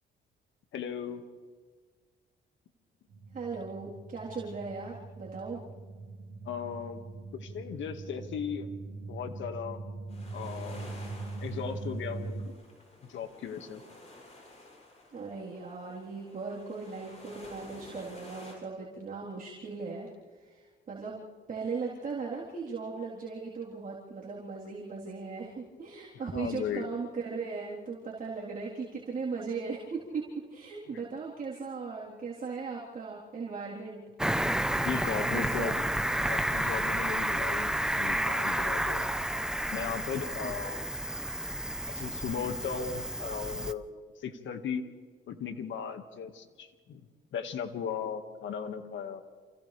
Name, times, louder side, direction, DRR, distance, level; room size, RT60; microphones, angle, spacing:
voice 1, 0.7-1.2 6.5-7.0 7.3-8.7 9.1-9.8 10.3-11.0 11.4-12.5 13.1-13.8 26.1-26.9 34.8-35.9 36.3-39.1 39.7-40.9 41.9-44.8 45.3-47.0 47.3-49.2, left 7 dB, 70° left, 7 dB, 2.0 m, -37 dB
sound 1, 3.1-12.5, right 3 dB, 60° right, 1.7 m, -42 dB
voice 2, 3.3-5.6 15.1-30.2 30.5-34.0 35.1-35.8 40.4-40.7, right 4 dB, 45° right, -6 dB, 4.0 m, -38 dB
sound 2, 10.1-18.6, left 2 dB, 35° left, 7.5 m, -51 dB
Cricket, 34.2-43.7, right 1 dB, 5° right, 0.9 m, -31 dB
29.0 x 28.0 x 3.5 m, 1.5 s
cardioid pair, 90°, 20 cm